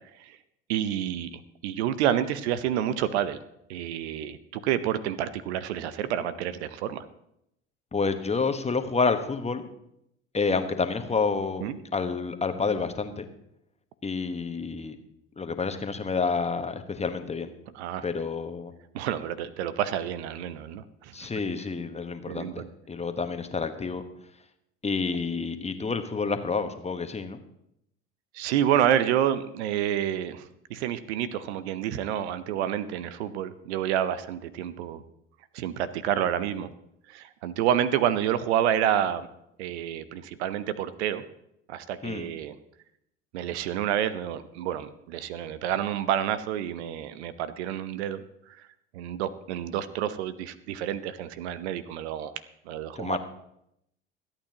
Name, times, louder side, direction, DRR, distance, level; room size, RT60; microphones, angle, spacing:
voice 1, 0.7-3.4 3.7-7.1 11.6-11.8 17.7-18.1 18.9-21.3 22.3-22.7 28.3-35.0 35.5-36.7 37.1-39.3 39.6-41.2 41.7-42.6 43.3-48.7 48.9-52.3 52.7-53.2, right 10 dB, 70° right, 14 dB, 0.7 m, -29 dB
voice 2, 7.9-9.7 10.3-13.3 14.0-15.0 15.4-17.5 18.0-18.7 21.1-24.0 24.8-27.4 42.0-42.3 52.9-53.2, left 4 dB, 20° left, 8 dB, 1.2 m, -29 dB
24.5 x 8.9 x 2.9 m, 0.78 s
hypercardioid pair, 65°, 34 cm